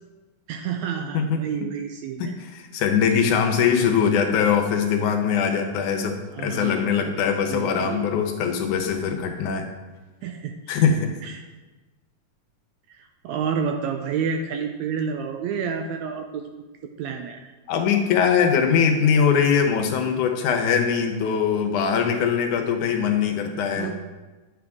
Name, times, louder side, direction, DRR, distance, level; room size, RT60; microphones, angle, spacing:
voice 1, 0.5-2.3 6.3-7.2 7.5-8.0 10.2-10.8 11.2-11.4 13.0-16.7 17.0-17.5 23.7-23.9, right 6 dB, 80° right, 5 dB, 1.7 m, -30 dB
voice 2, 1.1-1.7 2.2-9.7 10.7-11.1 17.7-23.9, left 7 dB, 75° left, 4 dB, 2.3 m, -22 dB
10.0 x 7.6 x 3.6 m, 1.2 s
omnidirectional pair, 3.6 m